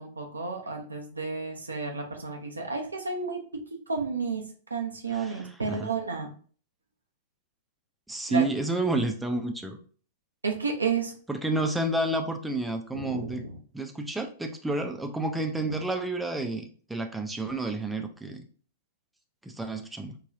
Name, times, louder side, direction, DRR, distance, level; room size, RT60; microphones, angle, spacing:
voice 1, 0.0-6.3 8.3-8.4 10.4-11.1 12.9-13.6, right 5 dB, 90° right, 2 dB, 0.6 m, -32 dB
voice 2, 5.1-5.9 8.1-9.8 11.3-13.4 13.7-18.5 19.4-20.2, right 2 dB, 5° right, 4 dB, 0.5 m, -30 dB
4.7 x 2.3 x 2.6 m, 0.43 s
figure-of-eight pair, 100°, 0 cm